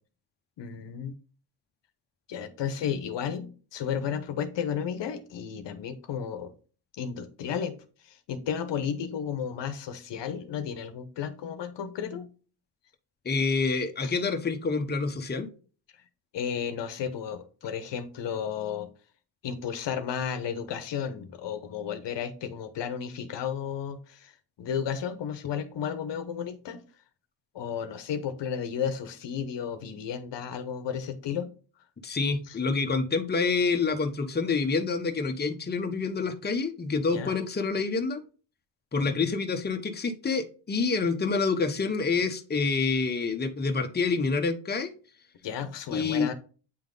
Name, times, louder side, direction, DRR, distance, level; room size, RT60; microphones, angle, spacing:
voice 1, 0.6-1.2 2.3-6.5 7.0-7.7 8.0-12.3 14.0-14.2 16.3-18.9 19.4-24.3 24.6-26.8 27.5-31.5 32.5-32.6 37.1-37.4 39.0-39.2 45.4-46.3, left 7 dB, 70° left, 0.9 m, -33 dB
voice 2, 13.2-15.5 32.0-38.2 38.9-44.9 45.9-46.3, left 4 dB, 20° left, 0.9 m, -27 dB
8.4 x 3.5 x 3.8 m
cardioid pair, 75°, 44 cm